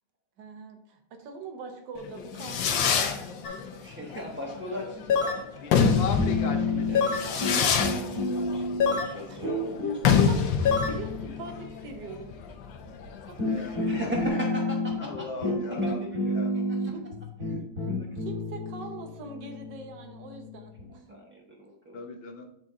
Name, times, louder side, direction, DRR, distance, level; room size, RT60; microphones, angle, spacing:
voice 1, 0.4-3.2 9.3-9.4 10.3-12.3 13.3-13.4 15.9-16.1 16.8-17.2 17.8-17.9 18.2-21.2, right 3 dB, 70° right, 4 dB, 1.6 m, -42 dB
Fireworks, 2.0-14.2, left 7 dB, 80° left, 1.5 m, -27 dB
sound 1, 3.4-3.6 5.1-5.5 6.9-7.3 8.8-9.2 10.7-11.0, left 6 dB, 60° left, 1.2 m, -25 dB
voice 2, 3.5-5.4 6.9-9.8 13.6-16.6 17.5-18.1 21.1-22.0, equal, 15° right, -3 dB, 0.4 m, -39 dB
voice 3, 5.6-7.5 13.4-14.4 15.0-16.5 21.9-22.5, left 4 dB, 45° left, 4 dB, 0.8 m, -38 dB
sound 2, 5.8-7.2 7.4-9.0 9.4-11.9 12.9-13.0 13.4-20.9, left 2 dB, 45° right, 2.7 m, -30 dB
8.6 x 4.1 x 3.7 m, 0.74 s
omnidirectional pair, 2.0 m